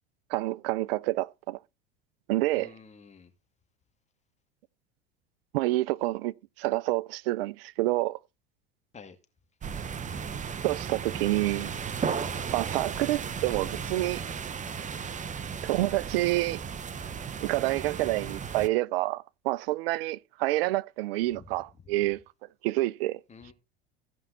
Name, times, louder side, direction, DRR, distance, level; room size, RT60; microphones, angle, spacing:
voice 1, 0.3-1.6 2.3-2.7 5.5-8.2 10.6-11.7 12.5-14.2 15.6-16.6 17.4-22.2 22.6-23.2, right 18 dB, 75° right, 0.5 m, -28 dB
voice 2, 2.5-3.3 8.9-9.2 21.3-21.5 23.3-23.5, left 5 dB, 25° left, 2.4 m, -49 dB
sound 1, 9.6-18.7, right 6 dB, 25° right, 0.9 m, -35 dB
16.0 x 5.5 x 4.1 m
hypercardioid pair, 95°, 30 cm